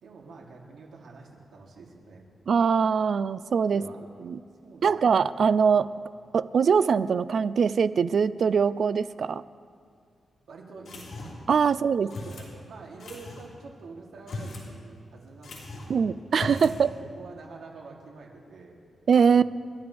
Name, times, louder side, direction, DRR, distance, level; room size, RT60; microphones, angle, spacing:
voice 1, 0.0-2.2 3.7-4.0 4.6-5.1 10.5-16.2 16.6-18.8 19.2-19.5, right 3 dB, 85° right, -2 dB, 3.0 m, -47 dB
voice 2, 2.5-3.8 4.2-4.4 4.8-5.9 6.3-9.4 11.5-12.1 15.9-16.9 19.1-19.4, right 6 dB, 55° right, 16 dB, 0.4 m, -22 dB
sound 1, 10.9-11.5 12.1-12.5 13.0-13.5 14.2-14.7 15.0-15.1 15.4-15.9 16.3-16.8, left 2 dB, 65° left, 4.5 m, -38 dB
30.0 x 13.0 x 3.5 m, 2.2 s
wide cardioid pair, 140°, 0 cm